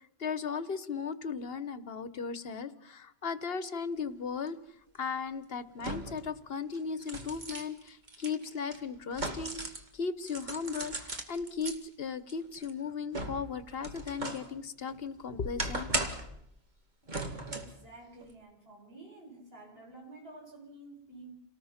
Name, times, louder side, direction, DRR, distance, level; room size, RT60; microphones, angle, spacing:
voice 1, 0.2-4.6 4.9-9.6 9.9-15.9, left 5 dB, 70° left, 14 dB, 1.3 m, -36 dB
sound 1, 4.5-4.6 5.8-6.3 6.7-9.9 10.2-11.8 12.3-14.5 14.9-16.4 17.1-17.8 18.2-18.3, right 2 dB, 45° right, 2.1 m, -38 dB
voice 2, 17.5-21.3, right 2 dB, 70° right, 0 dB, 6.2 m, -50 dB
28.5 x 18.5 x 5.9 m, 0.74 s
omnidirectional pair, 1.1 m